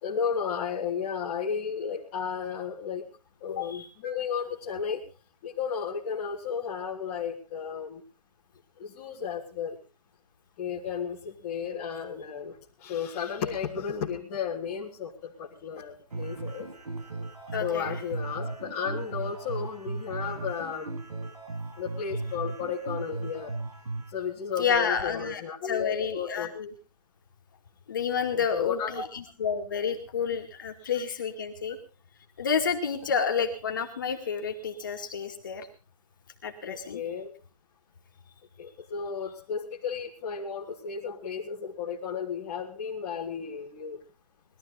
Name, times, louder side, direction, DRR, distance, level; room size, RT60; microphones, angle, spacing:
voice 1, 0.0-3.0 3.4-5.0 5.4-8.0 8.8-9.8 10.6-12.5 12.8-16.7 17.6-20.9 21.8-23.5 24.1-26.5 28.3-29.1 36.6-37.3 38.6-44.0, left 7 dB, 15° left, -8 dB, 1.8 m, -33 dB
voice 2, 3.5-3.9 17.5-18.0 24.6-26.7 27.9-31.8 32.4-35.7 36.4-37.0, left 6 dB, 30° left, 3 dB, 2.3 m, -30 dB
sound 1, 16.1-24.1, right 3 dB, 90° right, 6.7 m, -36 dB
21.0 x 13.5 x 4.1 m, 0.33 s
hypercardioid pair, 180°, 20 cm